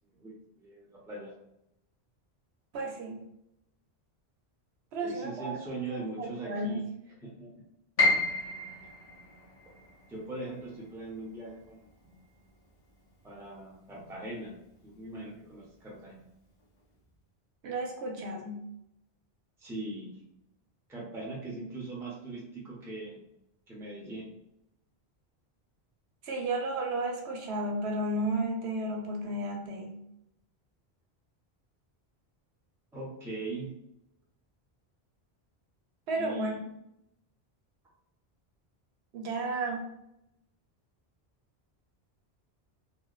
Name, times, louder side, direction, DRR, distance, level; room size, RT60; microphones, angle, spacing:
voice 1, 0.1-1.3 5.0-7.6 10.1-12.2 13.2-14.6 14.8-16.3 19.6-20.2 20.9-23.2 23.7-24.3 32.9-33.7 36.2-36.6, right 2 dB, 5° right, -4 dB, 0.5 m, -41 dB
voice 2, 2.7-3.2 4.9-5.6 5.9-6.8 17.6-18.7 26.2-30.0 36.1-36.5 39.1-39.9, right 2 dB, 85° right, 2 dB, 0.9 m, -33 dB
Piano, 8.0-13.9 14.2-15.4 15.8-15.9 16.6-16.9, left 2 dB, 40° left, 0.7 m, -33 dB
2.7 x 2.1 x 2.3 m, 0.81 s
omnidirectional pair, 1.1 m